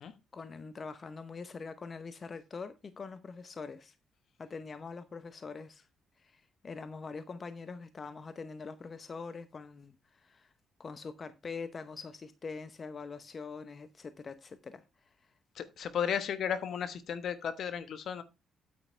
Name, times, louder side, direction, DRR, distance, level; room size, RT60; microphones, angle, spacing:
voice 1, 0.3-4.0 4.4-5.9 6.2-10.5 10.8-15.1, left 4 dB, 40° left, 0.8 m, -44 dB
voice 2, 15.6-18.2, left 8 dB, 65° left, 1.2 m, -34 dB
8.8 x 8.7 x 3.3 m
cardioid pair, 90°, 0 cm